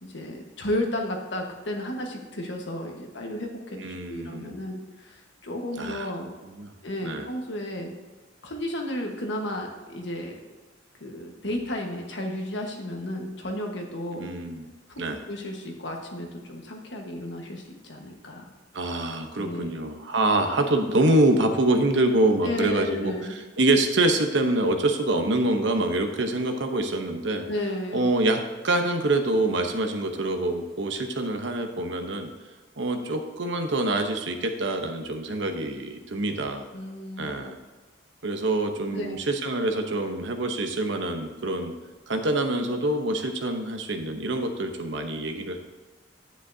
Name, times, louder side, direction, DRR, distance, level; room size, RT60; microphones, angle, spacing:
voice 1, 0.0-6.3 6.8-7.9 8.4-10.4 11.0-14.3 14.9-15.0 15.3-18.5 19.4-19.7 22.4-23.3 27.5-28.1 36.7-37.4 38.9-39.2, left 1 dB, 70° left, 2 dB, 1.4 m, -33 dB
voice 2, 3.8-4.7 5.8-6.1 6.4-6.7 7.0-7.3 14.1-14.7 15.0-15.2 18.7-23.1 23.6-27.5 27.9-32.3 32.8-36.6 37.2-37.6 38.2-41.7 42.1-45.6, right 2 dB, 70° right, 5 dB, 0.9 m, -25 dB
10.0 x 9.3 x 2.8 m, 1.3 s
head